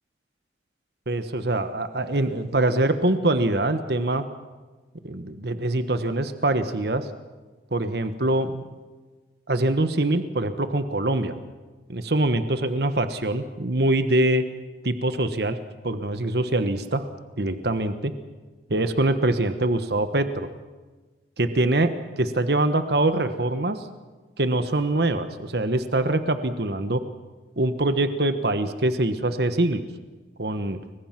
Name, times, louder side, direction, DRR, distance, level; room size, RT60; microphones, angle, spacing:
voice 1, 1.1-4.2 5.0-7.1 7.7-8.6 9.5-11.4 11.9-14.4 14.8-15.6 15.8-17.0 17.4-18.1 18.7-20.5 21.4-23.9 24.4-27.0 27.6-29.9 30.4-30.8, right 2 dB, 65° right, 10 dB, 1.3 m, -24 dB
29.5 x 23.0 x 6.0 m, 1.3 s
head